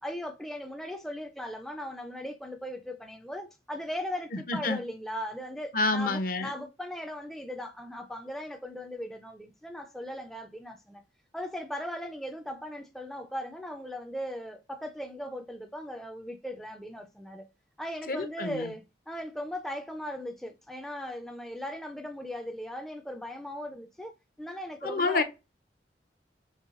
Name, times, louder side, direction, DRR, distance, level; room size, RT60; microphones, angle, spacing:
voice 1, 0.0-11.0 11.3-17.5 17.8-24.1 24.4-25.2, equal, ahead, 0.3 m, -38 dB
voice 2, 4.5-4.8 5.7-6.5 18.1-18.7 24.8-25.2, left 3 dB, 55° left, 0.7 m, -28 dB
5.4 x 3.3 x 2.5 m
head